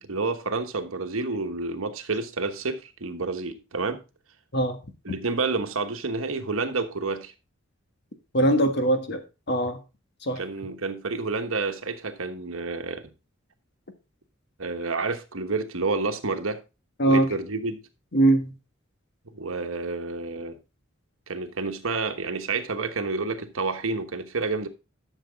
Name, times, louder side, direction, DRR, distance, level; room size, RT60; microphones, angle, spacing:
voice 1, 0.0-4.0 5.0-7.3 10.4-13.1 14.6-16.6 17.1-17.8 19.2-20.6 21.3-24.7, right 3 dB, 75° right, 1.2 m, -29 dB
voice 2, 8.3-9.2 9.5-9.8 10.2-10.4 17.0-17.3 18.1-18.5, right 1 dB, 50° left, 1.6 m, -21 dB
12.0 x 6.7 x 3.5 m
head